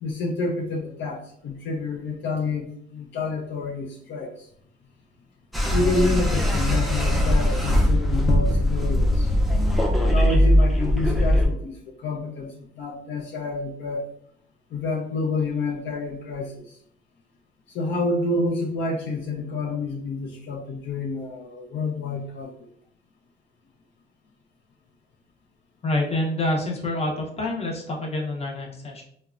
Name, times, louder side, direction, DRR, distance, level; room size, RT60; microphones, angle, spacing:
voice 1, 0.0-4.5 5.7-9.3 10.0-14.1 14.7-16.8 17.7-22.7, left 3 dB, 65° left, 0 dB, 0.5 m, -28 dB
sound 1, 5.5-11.5, left 1 dB, ahead, 0.4 m, -20 dB
voice 2, 25.8-29.0, left 1 dB, 30° left, 0 dB, 0.7 m, -27 dB
2.9 x 2.1 x 2.4 m, 0.66 s
cardioid pair, 90°, 20 cm